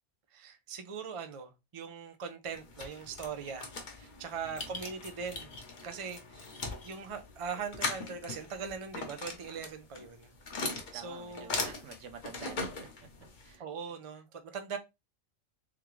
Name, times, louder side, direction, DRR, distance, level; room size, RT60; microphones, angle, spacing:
voice 1, 0.3-5.6 5.8-6.4 6.8-10.3 10.9-11.6 13.6-14.8, right 6 dB, 40° right, 0.4 m, -41 dB
sound 1, 2.5-13.6, left 3 dB, 40° left, 0.9 m, -40 dB
voice 2, 4.4-4.7 10.9-12.9 13.4-13.6, right 5 dB, 65° right, 1.1 m, -49 dB
3.6 x 3.5 x 3.1 m
omnidirectional pair, 1.4 m